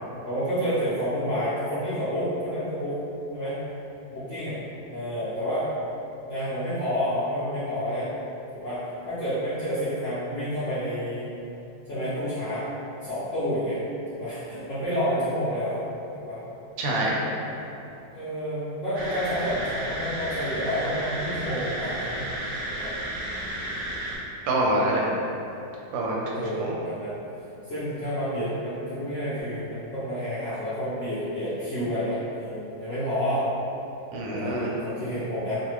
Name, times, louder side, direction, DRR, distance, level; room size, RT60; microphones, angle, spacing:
voice 1, 0.2-3.0 3.3-3.6 4.1-4.6 4.9-5.7 6.2-8.1 8.5-8.8 9.1-11.2 11.9-12.6 13.0-13.8 14.1-15.8 16.3-16.4 18.1-22.2 22.7-22.9 26.3-27.1 27.7-33.4 34.3-35.6, equal, 65° left, -13 dB, 0.7 m, -29 dB
voice 2, 16.8-17.2 24.4-25.0 25.9-26.7 34.1-34.7, right 1 dB, 85° right, -3 dB, 1.3 m, -26 dB
sound 1, 18.9-24.2, right 1 dB, 70° right, 0.8 m, -32 dB
3.1 x 2.2 x 3.0 m, 2.9 s
omnidirectional pair, 2.0 m